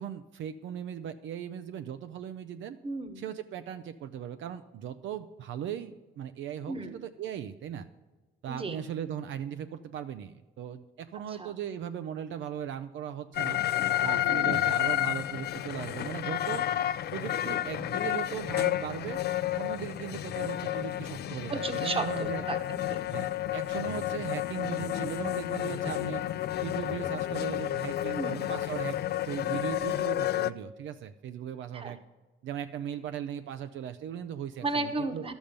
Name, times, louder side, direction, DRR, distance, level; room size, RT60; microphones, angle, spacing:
voice 1, 0.0-2.8 3.2-7.9 8.4-13.6 14.0-16.7 17.1-19.2 19.6-22.4 23.1-26.2 26.6-29.0 29.2-32.0 32.4-35.2, right 9 dB, 75° right, 9 dB, 0.5 m, -38 dB
voice 2, 2.8-3.2 6.7-7.0 8.5-8.8 11.3-11.5 14.3-14.6 17.5-17.6 21.5-23.0 28.2-28.5 31.7-32.0 34.6-35.3, right 3 dB, 30° right, 7 dB, 1.0 m, -34 dB
sound 1, 13.3-30.5, left 12 dB, 55° left, 0.4 m, -31 dB
11.5 x 7.1 x 5.1 m, 1.3 s
cardioid pair, 90°, 20 cm